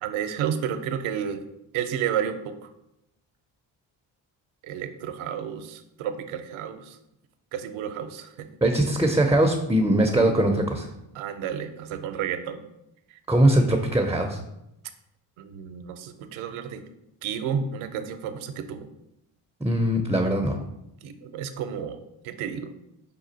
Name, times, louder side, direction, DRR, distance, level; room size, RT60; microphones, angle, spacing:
voice 1, 0.0-1.4 1.7-2.7 4.6-7.0 7.5-8.5 11.1-12.6 13.4-13.6 15.4-16.8 17.2-18.9 21.0-22.0 22.2-22.7, right 8 dB, 70° right, 9 dB, 0.6 m, -31 dB
voice 2, 8.6-10.9 13.3-14.4 19.6-20.6, right 1 dB, 5° right, 4 dB, 0.4 m, -21 dB
5.1 x 2.4 x 3.9 m, 0.84 s
hypercardioid pair, 50°, 49 cm